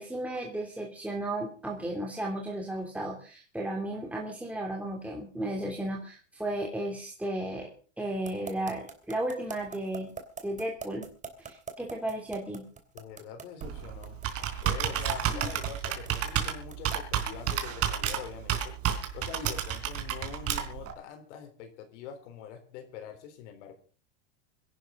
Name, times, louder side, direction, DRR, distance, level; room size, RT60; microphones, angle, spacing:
voice 1, 0.0-7.7 8.0-10.1 10.4-11.1 11.4-12.7 15.3-15.5, right 1 dB, 5° right, -1 dB, 2.9 m, -34 dB
sound 1, 8.2-17.1, right 5 dB, 20° right, 3.1 m, -42 dB
voice 2, 12.9-14.2 14.6-18.8 19.1-23.7, left 8 dB, 65° left, 6 dB, 3.8 m, -44 dB
Computer keyboard, 13.6-20.9, right 9 dB, 40° right, 3.7 m, -31 dB
24.5 x 11.5 x 3.8 m, 0.39 s
supercardioid pair, 120°, 37 cm